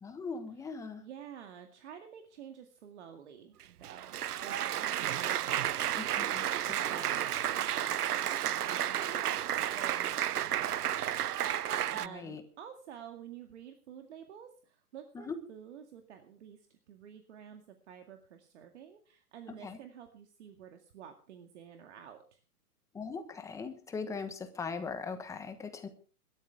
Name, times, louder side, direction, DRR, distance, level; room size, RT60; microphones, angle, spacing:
voice 1, 0.0-1.0 6.0-6.5 12.1-12.4 15.1-15.4 19.6-19.8 22.9-25.9, left 5 dB, 5° left, 8 dB, 1.2 m, -40 dB
voice 2, 0.6-11.1 11.5-22.4, right 9 dB, 50° right, 5 dB, 2.1 m, -50 dB
Applause, 3.6-12.1, right 11 dB, 80° right, 0.7 m, -32 dB
23.0 x 13.0 x 3.5 m, 0.38 s
hypercardioid pair, 150°, 45 cm